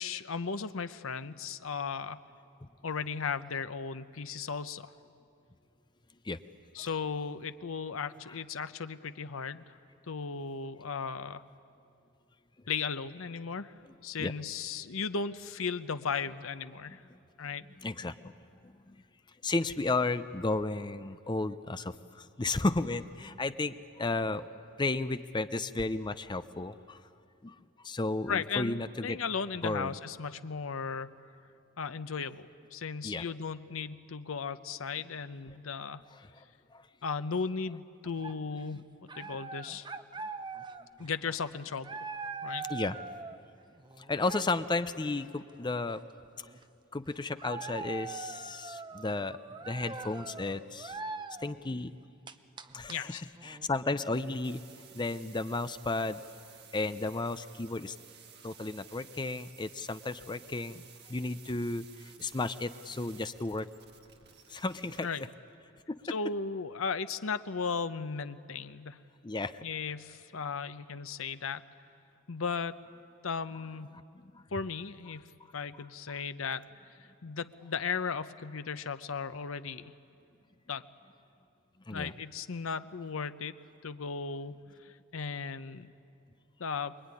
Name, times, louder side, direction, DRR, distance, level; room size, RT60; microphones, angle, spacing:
voice 1, 0.0-2.2 2.8-4.9 6.7-9.8 10.1-11.4 12.7-13.7 14.0-17.0 17.4-17.6 28.3-31.1 31.8-36.0 37.0-38.9 39.1-39.9 41.0-42.0 42.4-42.7 52.9-53.2 65.0-65.2 66.1-69.0 69.6-71.6 72.3-72.8 73.2-74.0 74.5-75.3 75.5-76.6 77.2-79.8 80.7-80.8 81.9-83.6 83.8-84.6 84.8-85.9 86.6-87.0, left 5 dB, 75° left, 12 dB, 0.8 m, -36 dB
voice 2, 17.8-18.3 18.6-19.0 19.4-24.5 24.8-27.0 27.4-27.6 27.8-29.2 29.6-30.0 33.0-33.2 36.1-36.4 36.7-36.9 38.7-38.8 42.7-43.0 44.0-46.0 46.9-51.0 51.4-52.0 52.7-54.6 54.9-56.2 56.7-58.0 58.4-63.7 64.5-65.1 65.9-66.0 69.2-69.6 74.2-74.4 81.9-82.1, left 2 dB, 20° left, 12 dB, 0.6 m, -33 dB
sound 1, 38.0-38.7 39.1-43.4 43.8-44.7 45.5-45.6 45.9-46.6 47.1-51.5 52.0-54.3, right 4 dB, 20° right, 0.7 m, -42 dB
sound 2, 54.1-65.3, right 8 dB, 55° right, 1.7 m, -55 dB
25.0 x 22.0 x 9.8 m, 2.6 s
head